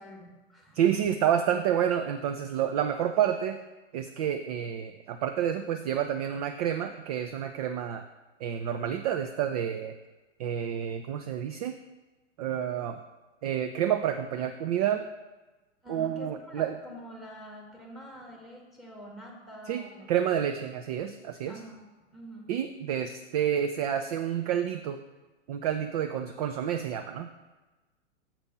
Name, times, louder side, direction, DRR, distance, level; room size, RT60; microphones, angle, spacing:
voice 1, 0.0-0.8 15.8-20.4 21.5-21.8 22.1-22.5, equal, ahead, -1 dB, 1.7 m, -46 dB
voice 2, 0.7-3.6 3.9-8.0 8.4-10.0 10.4-11.8 12.4-13.0 13.4-15.1 15.9-16.8 19.7-19.8 20.1-21.6 22.5-25.0 25.5-27.4, right 9 dB, 35° right, 8 dB, 0.4 m, -29 dB
7.4 x 5.1 x 5.5 m, 1.2 s
figure-of-eight pair, 110°, 37 cm